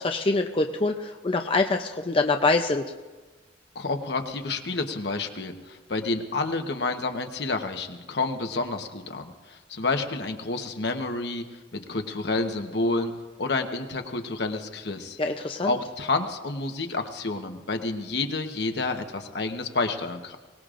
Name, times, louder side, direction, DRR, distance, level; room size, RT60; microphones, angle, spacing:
voice 1, 0.0-2.9 15.2-15.8, left 3 dB, 30° left, 4 dB, 0.5 m, -25 dB
voice 2, 3.7-11.5 11.7-13.1 13.4-15.2 15.7-20.4, left 3 dB, 65° left, 5 dB, 1.1 m, -29 dB
23.0 x 18.5 x 2.5 m, 1.3 s
head